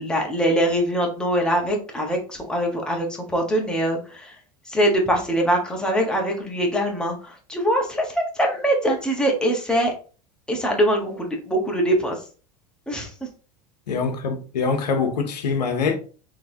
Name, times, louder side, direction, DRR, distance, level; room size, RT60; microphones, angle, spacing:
voice 1, 0.0-4.4 4.6-9.9 10.5-12.2 12.9-13.1, right 1 dB, 5° left, 1.2 m, -23 dB
voice 2, 13.9-16.0, left 5 dB, 85° left, 0.8 m, -24 dB
3.7 x 3.1 x 2.7 m
hypercardioid pair, 95°, 21 cm